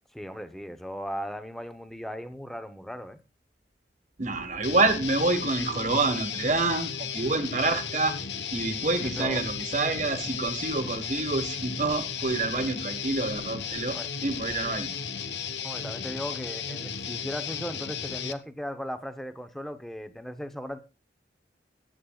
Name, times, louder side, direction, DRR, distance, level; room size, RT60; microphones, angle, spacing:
voice 1, 0.1-3.2 9.1-9.4 13.9-14.1 15.6-20.8, equal, ahead, 9 dB, 0.9 m, -37 dB
voice 2, 4.2-8.2 8.5-14.9, right 3 dB, 40° right, 8 dB, 1.4 m, -27 dB
Guitar, 4.6-18.3, left 7 dB, 70° left, 1.1 m, -35 dB
20.5 x 8.6 x 2.4 m, 0.32 s
head